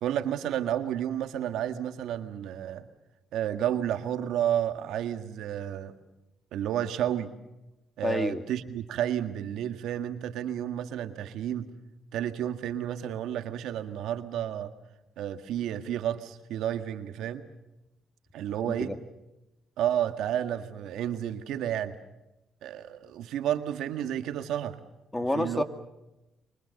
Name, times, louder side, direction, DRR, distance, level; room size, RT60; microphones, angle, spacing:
voice 1, 0.0-2.9 3.3-5.9 6.5-7.3 8.0-11.7 12.1-14.7 15.2-17.5 18.3-18.9 19.8-22.0 22.6-24.8 25.3-25.6, right 10 dB, 85° right, 9 dB, 1.7 m, -31 dB
voice 2, 8.0-8.4 18.6-19.0 25.1-25.6, left 1 dB, 15° left, 8 dB, 2.4 m, -29 dB
27.5 x 24.5 x 6.6 m, 0.96 s
cardioid pair, 90°, 0 cm